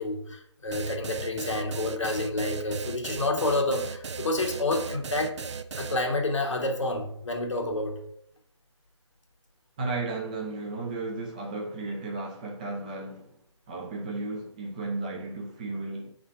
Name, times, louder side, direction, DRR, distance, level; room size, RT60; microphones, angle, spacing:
voice 1, 0.0-5.3 5.8-8.0, left 2 dB, 90° left, 1.4 m, -29 dB
sound 1, 0.7-6.0, right 5 dB, 70° right, 0.5 m, -36 dB
voice 2, 9.8-13.3 13.7-16.1, right 3 dB, 15° right, 0.5 m, -34 dB
4.5 x 3.8 x 5.5 m
hypercardioid pair, 165°, 15 cm